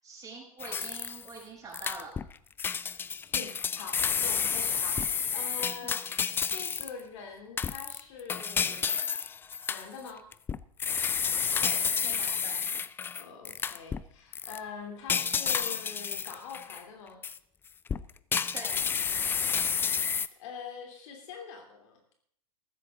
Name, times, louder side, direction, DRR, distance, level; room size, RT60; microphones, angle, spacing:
voice 1, 0.0-2.1 5.8-6.0 11.6-12.5 18.5-18.8, right 3 dB, 20° right, -3 dB, 7.4 m, -44 dB
sound 1, 0.6-1.4 1.7-2.3 2.6-7.0 7.6-14.0 14.3-14.6 15.1-16.8 17.2-17.4 17.9-20.3, left 6 dB, 10° left, 0.4 m, -30 dB
voice 2, 3.3-5.0 5.3-6.0 6.4-9.0 9.7-10.2 13.1-17.2 20.4-22.0, left 5 dB, 55° left, 3 dB, 3.2 m, -44 dB
14.5 x 13.5 x 3.8 m, 0.67 s
hypercardioid pair, 110°, 19 cm